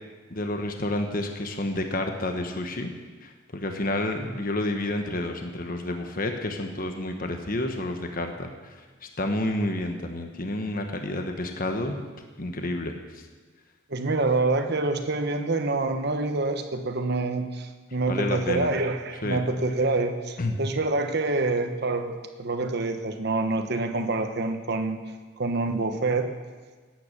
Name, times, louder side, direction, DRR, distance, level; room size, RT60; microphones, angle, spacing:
voice 1, 0.3-2.9 3.2-12.0 12.4-13.2 18.1-18.7 19.2-19.4 20.4-20.5, left 1 dB, 45° left, 5 dB, 1.2 m, -30 dB
voice 2, 13.9-25.0 25.4-26.3, right 3 dB, 55° right, 7 dB, 1.1 m, -26 dB
17.0 x 9.4 x 6.7 m, 1.4 s
head